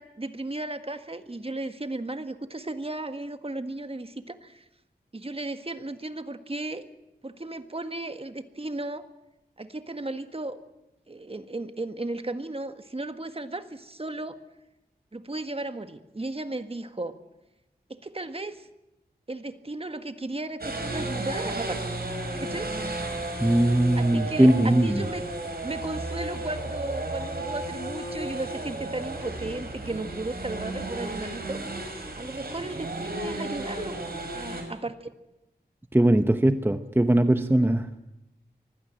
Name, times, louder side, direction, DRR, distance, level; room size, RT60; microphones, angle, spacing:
voice 1, 0.0-4.6 5.1-6.8 7.2-9.1 9.6-10.6 11.1-14.4 15.1-17.2 17.9-18.7 19.3-22.0 22.4-22.7 23.9-25.2 25.6-31.9 32.2-34.0 34.3-35.1, right 2 dB, 35° right, 9 dB, 1.6 m, -35 dB
sound 1, 20.6-34.6, right 2 dB, 65° right, 5.9 m, -34 dB
voice 2, 23.4-25.0 35.9-37.9, right 1 dB, 15° right, 9 dB, 1.0 m, -20 dB
24.0 x 16.0 x 9.0 m, 0.94 s
wide cardioid pair, 65°, 17 cm